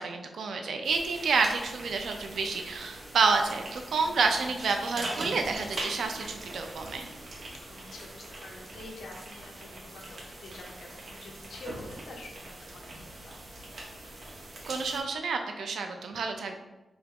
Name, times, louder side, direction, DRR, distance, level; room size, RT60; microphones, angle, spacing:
voice 1, 0.0-7.1 14.7-16.6, right 4 dB, 85° right, 5 dB, 0.4 m, -29 dB
sound 1, 0.8-15.0, right 1 dB, 50° right, 0.8 m, -42 dB
voice 2, 7.7-13.3, left 2 dB, 85° left, 0 dB, 0.7 m, -47 dB
3.5 x 2.8 x 3.5 m, 1.1 s
wide cardioid pair, 150°, 0 cm